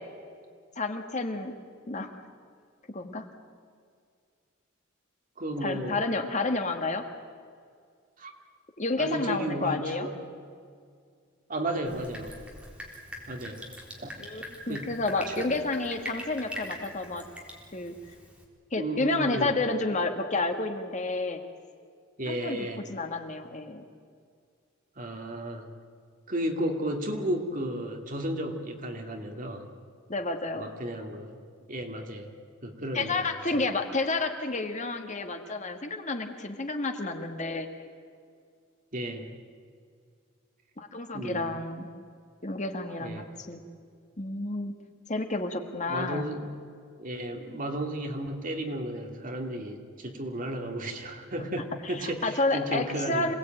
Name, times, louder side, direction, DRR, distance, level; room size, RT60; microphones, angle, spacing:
voice 1, 0.8-1.5 1.9-2.1 2.9-3.3 5.6-7.0 8.8-10.1 14.2-17.2 17.7-17.9 18.7-21.4 22.3-23.8 30.1-30.7 32.9-37.7 40.8-41.9 42.4-43.6 44.2-44.7 45.1-46.3 51.8-53.3, left 2 dB, 35° left, 6 dB, 1.8 m, -30 dB
voice 2, 5.4-6.1 8.2-8.3 9.0-10.1 11.5-12.3 13.3-13.6 14.0-14.2 14.7-14.9 15.3-15.5 18.8-19.5 22.2-22.8 25.0-25.7 26.3-29.7 30.5-31.4 31.7-32.3 32.6-33.6 38.9-39.3 41.1-41.5 43.0-43.3 45.9-46.5 47.0-53.3, right 1 dB, 40° right, 3 dB, 2.7 m, -33 dB
Drip, 11.9-18.4, equal, 5° right, 3.8 m, -43 dB
27.0 x 19.0 x 9.2 m, 2.2 s
head